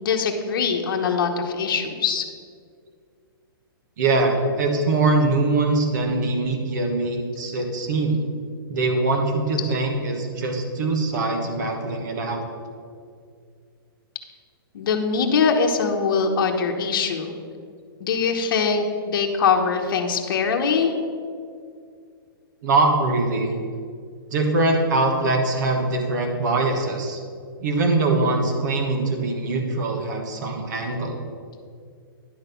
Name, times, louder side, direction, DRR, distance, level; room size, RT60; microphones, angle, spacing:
voice 1, 0.0-2.3 9.6-9.7 14.7-17.4 18.0-20.9, left 5 dB, 60° left, 3 dB, 1.0 m, -22 dB
voice 2, 4.0-8.2 8.7-12.4 22.6-23.5 24.3-27.2 27.6-31.2, right 2 dB, 50° right, 3 dB, 1.4 m, -22 dB
10.5 x 4.1 x 6.8 m, 2.2 s
hypercardioid pair, 165°, 12 cm